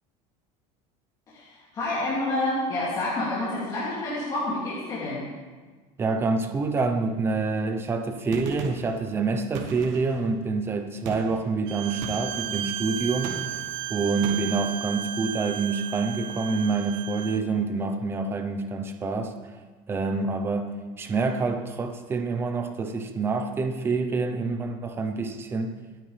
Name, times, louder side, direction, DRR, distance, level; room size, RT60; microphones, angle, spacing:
voice 1, 1.3-5.2, left 2 dB, 25° left, -8 dB, 2.7 m, -28 dB
voice 2, 6.0-13.4 13.9-19.3 19.9-20.7 21.0-25.8, right 4 dB, 15° right, 6 dB, 0.8 m, -27 dB
Gunshot gunfire, 8.3-9.0 9.5-10.3 11.0-11.5 12.0-12.5 13.2-13.7 14.2-14.6, right 6 dB, 60° right, 1.6 m, -37 dB
Bowed string instrument, 11.7-17.4, right 12 dB, 30° right, 0.5 m, -34 dB
24.5 x 9.3 x 3.5 m, 1.4 s
cardioid pair, 180°, 16 cm